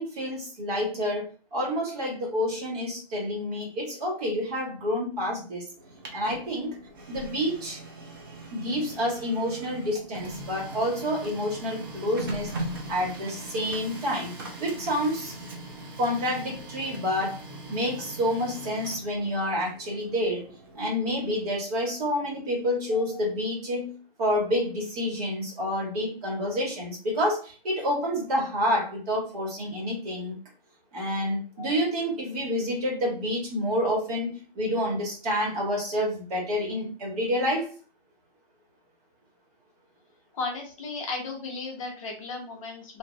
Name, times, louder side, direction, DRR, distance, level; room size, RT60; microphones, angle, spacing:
voice 1, 0.0-5.6 6.1-6.7 7.1-7.8 8.5-12.5 12.9-14.3 14.6-15.3 16.0-17.4 17.7-20.4 20.7-23.9 24.2-30.4 30.9-37.7, equal, 40° right, -2 dB, 1.6 m, -28 dB
Printer, 5.7-21.5, right 1 dB, 25° right, 0.4 m, -41 dB
voice 2, 40.3-43.0, left 3 dB, 35° left, 1 dB, 0.7 m, -35 dB
2.7 x 2.4 x 3.1 m, 0.36 s
figure-of-eight pair, 140°, 30 cm